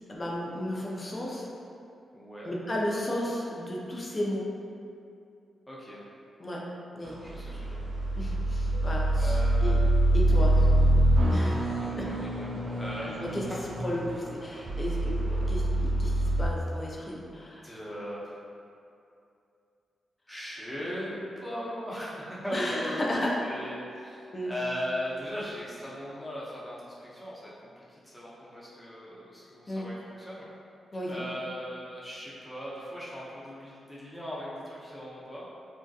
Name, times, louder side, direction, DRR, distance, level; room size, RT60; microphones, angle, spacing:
voice 1, 0.1-1.5 2.4-4.5 6.4-6.6 6.9-7.2 8.2-9.8 10.1-10.5 11.3-11.7 12.0-12.1 13.2-13.4 13.8-17.6 22.5-23.4 24.3-24.5 29.7-29.9 30.9-31.2, left 1 dB, 35° left, -3 dB, 0.5 m, -33 dB
voice 2, 2.1-2.6 5.7-6.0 7.2-7.8 9.2-9.8 10.3-10.9 11.8-13.1 14.6-14.7 17.0-18.2 20.3-27.5 27.8-30.4 31.1-35.5, equal, 10° left, -8 dB, 0.8 m, -39 dB
sound 1, 7.0-16.5, right 1 dB, 65° right, 0.3 m, -25 dB
2.7 x 2.1 x 2.3 m, 2.5 s
supercardioid pair, 45°, 0 cm